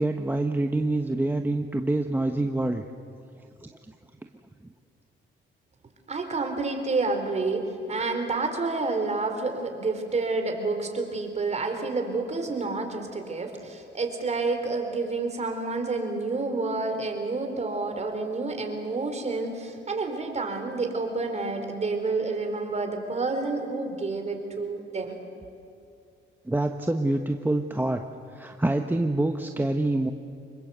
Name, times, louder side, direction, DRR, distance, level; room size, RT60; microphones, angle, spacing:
voice 1, 0.0-2.8 3.6-3.9 26.5-28.0 28.3-30.1, right 2 dB, 10° right, 5 dB, 1.1 m, -26 dB
voice 2, 6.1-25.1, right 3 dB, 35° right, 5 dB, 4.2 m, -29 dB
25.5 x 22.0 x 8.2 m, 2.6 s
cardioid pair, 90°, 20 cm